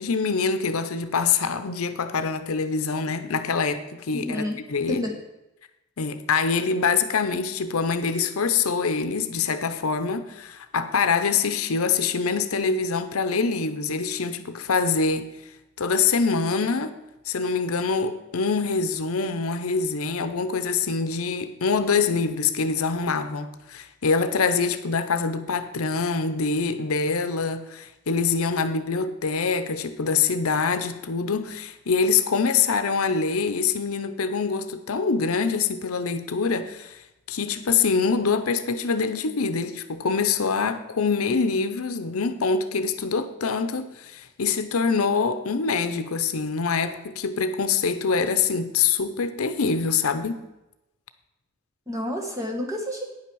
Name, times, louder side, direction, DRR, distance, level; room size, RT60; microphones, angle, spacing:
voice 1, 0.0-5.0 6.0-15.3 15.8-17.0 17.3-37.0 37.3-50.4, left 5 dB, 85° left, 10 dB, 0.7 m, -25 dB
voice 2, 4.1-4.6 4.9-5.1 51.9-53.0, left 1 dB, 15° right, 1 dB, 1.3 m, -29 dB
9.4 x 5.8 x 6.2 m, 0.97 s
head